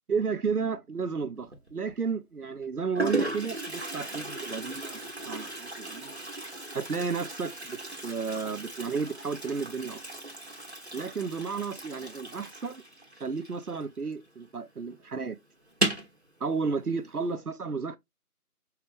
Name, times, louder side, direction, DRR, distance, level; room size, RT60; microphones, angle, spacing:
voice 1, 0.1-5.0 5.3-6.2 6.7-10.0 10.9-12.8 13.2-15.4 16.4-18.0, right 5 dB, 70° right, 0.9 m, -32 dB
Toilet flush, 1.4-1.9 2.6-2.7 2.9-14.2 14.5-14.6 14.9-15.0 15.7-16.2, right 1 dB, 45° right, 1.2 m, -36 dB
5.7 x 2.4 x 3.3 m
figure-of-eight pair, 175°, 46 cm